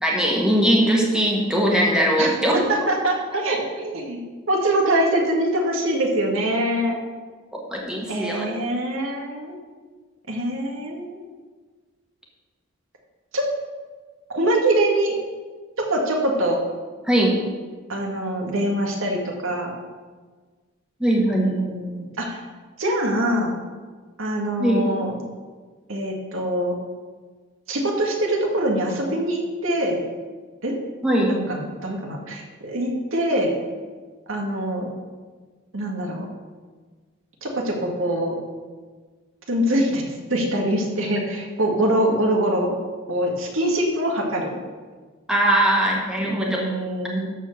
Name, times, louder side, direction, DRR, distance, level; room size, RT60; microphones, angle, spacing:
voice 1, 0.0-2.5 7.7-8.5 17.0-17.3 21.0-21.5 24.6-24.9 31.0-31.3 45.3-46.6, right 1 dB, 5° right, -3 dB, 1.7 m, -20 dB
voice 2, 2.7-4.2 4.5-7.0 8.1-9.6 10.3-11.2 13.3-13.5 14.3-15.2 15.8-16.6 17.9-19.7 21.2-22.4 22.8-23.5 24.2-25.2 25.9-26.8 27.7-30.0 30.6-30.7 31.3-33.5 34.3-34.9 35.7-36.3 37.4-38.4 39.5-40.0 40.3-42.7 43.1-44.6 46.2-47.3, right 1 dB, 80° right, 0 dB, 1.8 m, -24 dB
12.5 x 4.4 x 6.6 m, 1.4 s
head